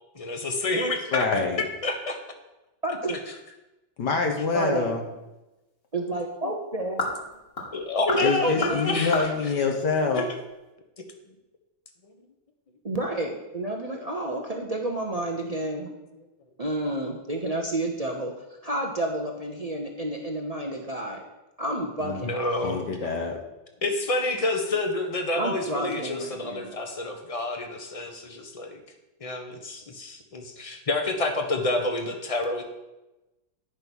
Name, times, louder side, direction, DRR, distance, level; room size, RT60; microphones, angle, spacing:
voice 1, 0.1-1.3 1.8-2.2 6.4-6.5 7.7-9.5 10.2-10.3 11.0-11.1 22.2-22.8 23.8-28.8 29.2-32.6, left 2 dB, 25° left, 5 dB, 0.8 m, -29 dB
voice 2, 1.1-1.6 4.0-5.0 8.2-10.3 22.0-22.3 22.6-23.4, left 4 dB, 65° left, 3 dB, 1.6 m, -26 dB
voice 3, 2.8-3.2 4.5-4.9 5.9-7.0 8.1-9.0 12.8-15.9 16.6-18.3 18.6-21.2 21.6-22.3 22.6-22.9 25.3-26.8, right 1 dB, 40° right, 2 dB, 0.5 m, -30 dB
sound 1, 4.9-10.7, left 2 dB, 45° left, 2.3 m, -36 dB
10.5 x 5.4 x 6.2 m, 1.0 s
omnidirectional pair, 2.1 m